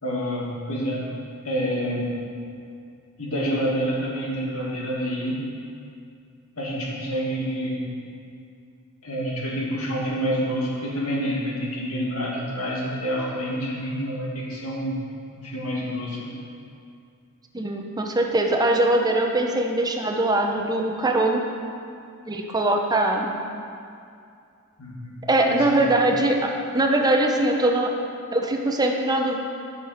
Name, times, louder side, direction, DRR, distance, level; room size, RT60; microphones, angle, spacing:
voice 1, 0.0-1.0 1.4-2.2 3.2-5.4 6.6-7.8 9.0-14.9 15.4-16.2 24.8-26.1, equal, 75° left, -5 dB, 2.2 m, -28 dB
voice 2, 17.5-21.4 22.3-23.3 25.3-27.9 28.3-29.4, right 1 dB, 20° right, 2 dB, 0.7 m, -22 dB
10.0 x 6.6 x 5.0 m, 2.4 s
head